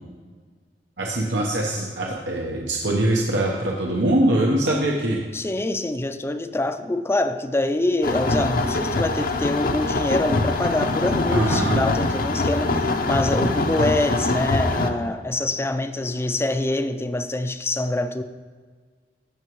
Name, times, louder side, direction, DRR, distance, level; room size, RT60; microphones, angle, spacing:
voice 1, 1.0-5.2 11.3-11.8, right 1 dB, 90° right, -1 dB, 1.0 m, -22 dB
voice 2, 5.3-18.2, left 2 dB, 15° left, 10 dB, 0.4 m, -25 dB
sound 1, 8.0-14.9, left 2 dB, 55° left, 0.7 m, -23 dB
16.0 x 6.0 x 3.1 m, 1.5 s
head